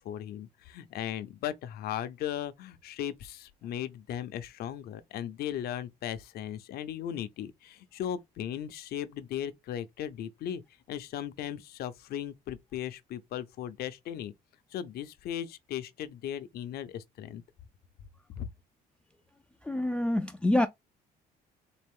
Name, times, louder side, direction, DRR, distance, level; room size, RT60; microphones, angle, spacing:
voice 1, 0.0-10.6 10.9-14.3 14.7-17.4 18.4-18.5, left 10 dB, 65° left, 0.7 m, -37 dB
voice 2, 19.7-20.7, left 1 dB, 5° left, 0.3 m, -26 dB
4.2 x 2.5 x 3.5 m
cardioid pair, 110°, 17 cm